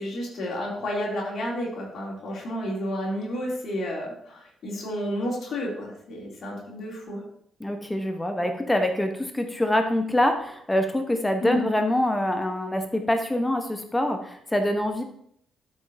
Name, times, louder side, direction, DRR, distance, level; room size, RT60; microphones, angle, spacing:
voice 1, 0.0-7.2 11.4-11.7, equal, 50° left, -4 dB, 2.8 m, -31 dB
voice 2, 7.6-15.0, left 1 dB, 15° left, 6 dB, 1.0 m, -25 dB
12.5 x 5.4 x 2.7 m, 0.69 s
figure-of-eight pair, 40°, 0 cm